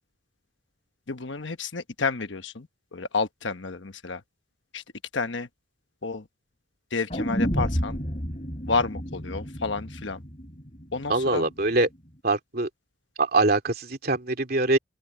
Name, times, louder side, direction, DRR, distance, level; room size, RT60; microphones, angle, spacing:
voice 1, 1.1-4.2 4.7-4.8 5.1-5.5 6.0-6.3 6.9-8.0 8.7-10.2 10.9-11.4, left 4 dB, 70° left, 1.1 m, -30 dB
sound 1, 7.1-11.1 11.4-11.5, equal, 35° left, 5.6 m, -30 dB
voice 2, 11.1-11.9 12.2-12.7 13.2-14.8, right 2 dB, 50° right, 2.9 m, -23 dB
open air
head